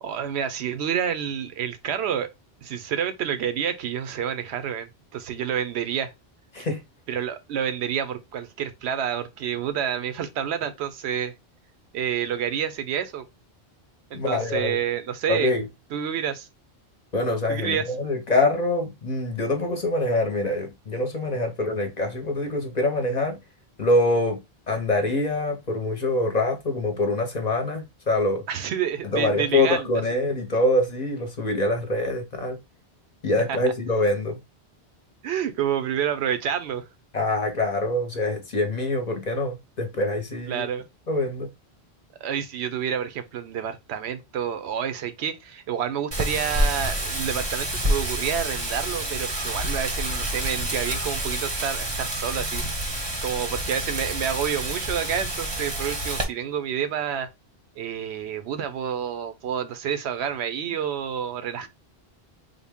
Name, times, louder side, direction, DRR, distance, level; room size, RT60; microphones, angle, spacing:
voice 1, 0.0-2.3 2.6-6.1 7.1-11.3 11.9-13.2 14.1-15.5 15.9-16.5 17.5-17.9 28.5-30.3 33.5-33.6 35.2-36.8 40.5-40.8 42.2-52.6 53.2-57.3 57.8-61.7, right 8 dB, 80° right, 0.8 m, -29 dB
voice 2, 14.1-14.8 15.3-15.7 17.1-23.4 23.8-24.4 24.7-28.4 29.0-32.6 33.2-34.4 37.1-40.7 41.1-41.5, left 2 dB, 45° left, 0.7 m, -25 dB
Wind, 46.1-56.2, right 1 dB, 30° right, 0.6 m, -28 dB
3.6 x 2.1 x 3.4 m
omnidirectional pair, 1.1 m